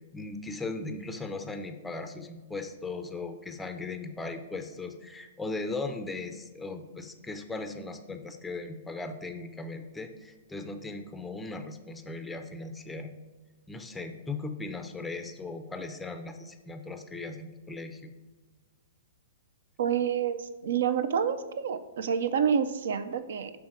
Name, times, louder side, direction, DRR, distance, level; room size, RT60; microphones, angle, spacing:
voice 1, 0.1-13.1 13.7-18.1, left 3 dB, 10° left, 7 dB, 0.4 m, -38 dB
voice 2, 19.8-23.5, right 7 dB, 65° right, 12 dB, 0.4 m, -28 dB
6.3 x 3.4 x 4.6 m, 1.2 s
figure-of-eight pair, 110°, 0 cm